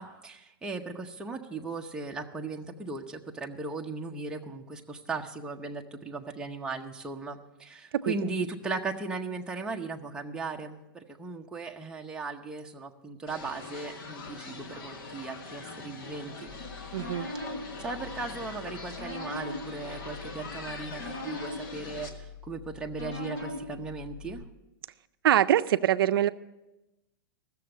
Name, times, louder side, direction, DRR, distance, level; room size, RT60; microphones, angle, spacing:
voice 1, 0.0-16.5 17.8-24.4, right 3 dB, 5° right, 1 dB, 0.8 m, -37 dB
sound 1, 13.3-22.1, left 3 dB, 75° left, 1.8 m, -42 dB
sound 2, 16.5-24.4, left 2 dB, 45° left, 5.3 m, -41 dB
voice 2, 16.9-17.3 25.2-26.3, right 11 dB, 80° right, 13 dB, 0.4 m, -23 dB
15.0 x 7.0 x 6.5 m, 0.98 s
hypercardioid pair, 145°, 12 cm